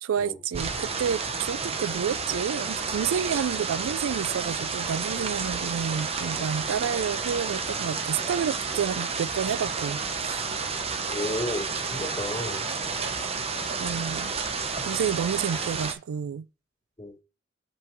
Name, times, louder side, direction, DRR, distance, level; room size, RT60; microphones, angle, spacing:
voice 1, 0.0-10.5 13.8-14.3 14.8-16.5, right 8 dB, 90° right, 0.4 m, -30 dB
sound 1, 0.5-15.9, right 4 dB, 30° right, 0.7 m, -31 dB
voice 2, 11.1-12.7 17.0-17.2, left 1 dB, 20° left, 2.8 m, -33 dB
7.5 x 5.4 x 3.0 m
head